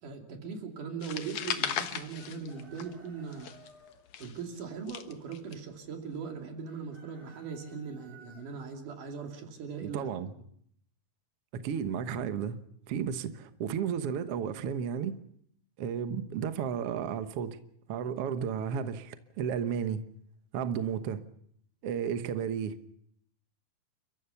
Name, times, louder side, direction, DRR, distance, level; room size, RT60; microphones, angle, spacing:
voice 1, 0.0-3.5 4.2-10.1, right 5 dB, 60° right, 4.1 m, -40 dB
sound 1, 1.0-3.1 3.3-5.5, left 9 dB, 60° left, 2.0 m, -36 dB
Chicken rooster, 2.1-4.0 6.6-8.4, right 3 dB, 30° right, 6.9 m, -57 dB
voice 2, 9.8-10.3 11.5-12.6 12.9-15.2 15.8-17.6 17.9-20.0 20.5-21.2 21.8-22.8, right 7 dB, 75° right, 1.3 m, -33 dB
30.0 x 14.5 x 7.0 m
omnidirectional pair, 4.4 m